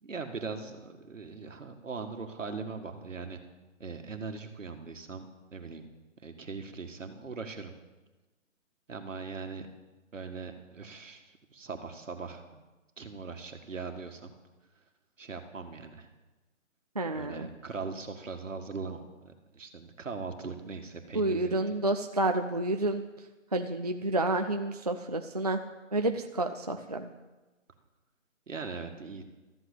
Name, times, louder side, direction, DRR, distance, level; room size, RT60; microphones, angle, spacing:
voice 1, 0.0-3.4 3.8-5.9 6.2-7.7 8.9-9.7 10.1-12.6 13.0-14.3 15.2-16.1 17.1-21.8 28.5-29.2, right 4 dB, 70° right, 5 dB, 1.9 m, -40 dB
voice 2, 17.0-17.5 21.1-23.0 23.5-25.6 25.9-27.1, right 2 dB, 30° right, 5 dB, 0.5 m, -29 dB
13.5 x 8.0 x 8.2 m, 1.2 s
hypercardioid pair, 165°, 39 cm